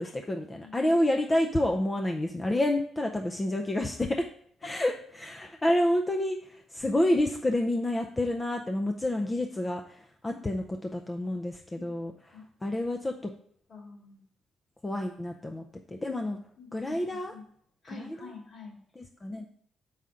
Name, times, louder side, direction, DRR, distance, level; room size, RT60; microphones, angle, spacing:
voice 1, 0.0-4.2 4.6-12.1 12.6-13.1 14.8-15.6 16.0-16.4 16.7-17.3 17.9-18.2 19.0-19.4, left 1 dB, 20° left, 4 dB, 0.5 m, -29 dB
voice 2, 0.6-0.9 11.7-11.9 12.3-12.4 13.7-14.2 16.6-17.4 17.8-18.8, left 4 dB, 50° left, 1 dB, 2.2 m, -47 dB
7.1 x 5.6 x 3.7 m, 0.66 s
cardioid pair, 90°, 0 cm